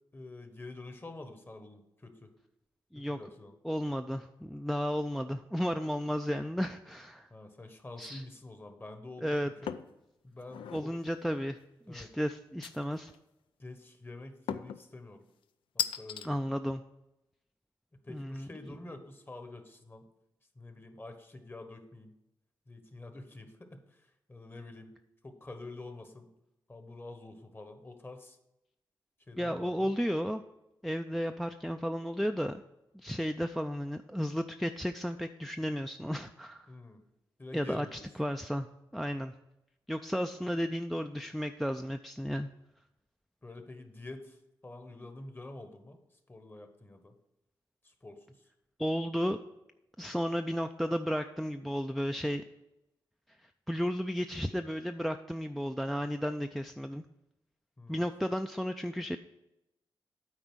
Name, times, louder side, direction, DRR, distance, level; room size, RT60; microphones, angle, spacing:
voice 1, 0.1-2.3 2.9-3.5 7.3-9.8 10.2-10.9 11.9-12.1 13.6-15.2 15.7-16.4 18.0-20.1 20.6-22.1 22.7-24.0 24.3-24.9 25.2-26.3 26.7-28.4 29.3-29.9 36.7-37.0 37.4-38.1 43.4-44.4 44.6-46.0 46.3-47.1 47.8-48.4 57.8-58.1, left 2 dB, 25° left, 7 dB, 1.1 m, -47 dB
voice 2, 3.6-7.3 8.0-8.2 9.2-9.5 10.7-11.6 11.9-13.1 16.2-16.8 18.1-18.8 29.4-30.4 30.8-32.6 32.9-36.7 37.5-38.7 38.9-39.3 39.9-42.5 48.8-49.4 50.0-52.4 53.7-57.0 57.9-59.2, equal, ahead, 7 dB, 0.3 m, -33 dB
sound 1, 9.7-10.0 10.4-10.9 12.6-13.2 14.5-14.8 15.8-16.3, left 9 dB, 90° left, 0.4 m, -36 dB
8.8 x 4.2 x 6.2 m, 0.90 s
cardioid pair, 60°, 9 cm